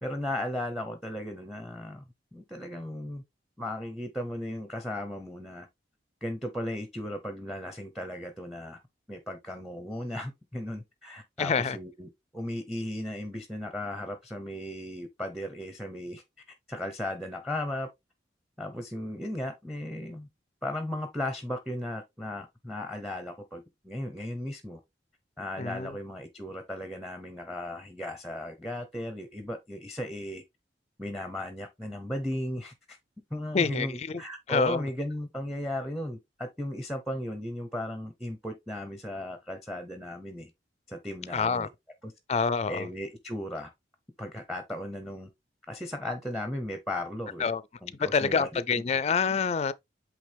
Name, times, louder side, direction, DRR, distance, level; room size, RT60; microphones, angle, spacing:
voice 1, 0.0-2.0 2.3-3.2 3.6-5.7 6.2-8.8 9.1-16.2 16.7-17.9 18.6-20.3 20.6-24.8 25.4-30.4 31.0-33.0 33.3-40.5 40.9-41.7 42.0-42.1 42.7-43.7 44.2-45.3 45.7-47.5 47.8-48.6, left 1 dB, ahead, 0.7 m, -36 dB
voice 2, 11.4-11.8 25.6-25.9 33.5-34.2 34.5-34.8 41.3-41.7 42.3-42.9 47.4-47.6 48.0-49.7, left 5 dB, 35° left, 0.4 m, -27 dB
8.4 x 3.3 x 3.4 m
head